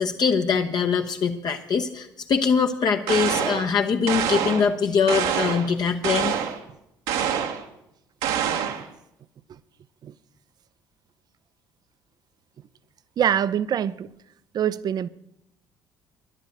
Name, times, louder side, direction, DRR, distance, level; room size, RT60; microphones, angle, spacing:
voice 1, 0.0-6.4, left 6 dB, 40° left, 0.9 m, -23 dB
sound 1, 3.1-3.7 4.1-4.7 5.1-5.7 6.0-6.6 7.1-7.6 8.2-8.9, right 8 dB, 65° right, 1.2 m, -26 dB
voice 2, 13.2-14.1 14.5-15.1, right 9 dB, 40° right, 0.6 m, -24 dB
11.0 x 11.0 x 6.7 m
figure-of-eight pair, 50°, 10 cm